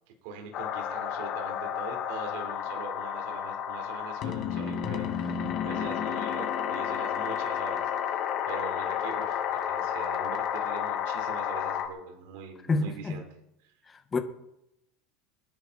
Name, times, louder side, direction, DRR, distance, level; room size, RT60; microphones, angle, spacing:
voice 1, 0.2-13.3 13.6-13.7, right 5 dB, 75° right, 4.1 m, -42 dB
sound 1, 0.5-11.9, left 9 dB, 50° left, 2.5 m, -31 dB
voice 2, 12.7-13.2 13.9-14.2, left 3 dB, 20° left, 1.8 m, -28 dB
25.5 x 10.5 x 4.3 m
supercardioid pair, 125°, 0 cm